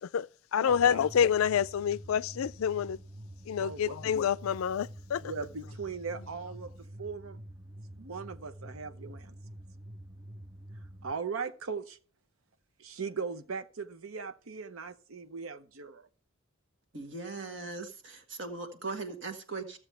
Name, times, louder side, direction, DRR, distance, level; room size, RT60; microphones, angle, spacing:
voice 1, 0.0-3.0 3.5-5.3, left 8 dB, 90° left, 0.4 m, -28 dB
sound 1, 0.7-11.1, right 1 dB, 15° right, 0.4 m, -47 dB
voice 2, 3.6-4.0 5.2-7.4 7.9-9.4 11.0-12.0 12.8-16.1, right 5 dB, 90° right, 0.8 m, -39 dB
voice 3, 16.9-19.8, right 3 dB, 60° right, 1.6 m, -39 dB
15.0 x 7.1 x 3.4 m
head